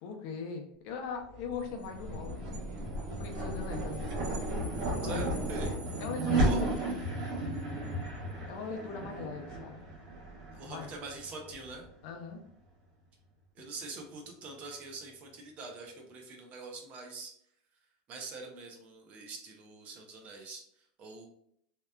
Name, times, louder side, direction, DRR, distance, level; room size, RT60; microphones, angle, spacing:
voice 1, 0.0-2.6 3.1-4.1 5.0-5.2 6.0-6.7 8.5-9.8 10.7-10.9 12.0-12.4, left 5 dB, 60° left, 3 dB, 0.5 m, -40 dB
sound 1, 1.3-11.9, right 1 dB, 75° right, 1.0 m, -34 dB
voice 2, 5.0-5.7 6.4-6.6 10.5-11.9 13.5-17.3 18.1-21.3, right 3 dB, 35° right, 2 dB, 0.6 m, -44 dB
2.8 x 2.2 x 2.2 m, 0.69 s
supercardioid pair, 145°, 4 cm